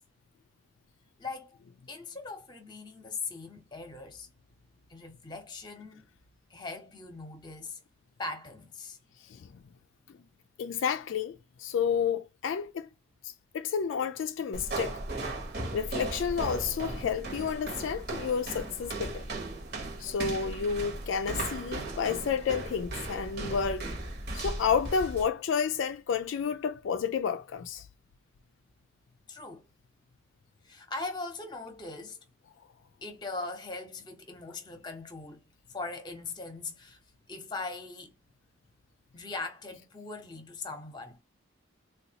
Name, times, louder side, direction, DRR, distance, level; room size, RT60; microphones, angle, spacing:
voice 1, 1.2-1.6 1.9-4.3 4.9-6.1 6.5-7.8 8.2-9.0 29.3-29.6 30.6-32.2 33.0-35.4 35.7-37.0 37.3-38.1 39.1-41.2, left 3 dB, 20° left, 0.8 m, -40 dB
voice 2, 10.6-12.9 13.2-15.0 15.7-19.3 20.0-23.9 24.3-27.9, left 6 dB, 65° left, 0.3 m, -30 dB
sound 1, 14.5-25.3, right 2 dB, 50° right, 1.0 m, -37 dB
3.8 x 2.3 x 2.8 m
head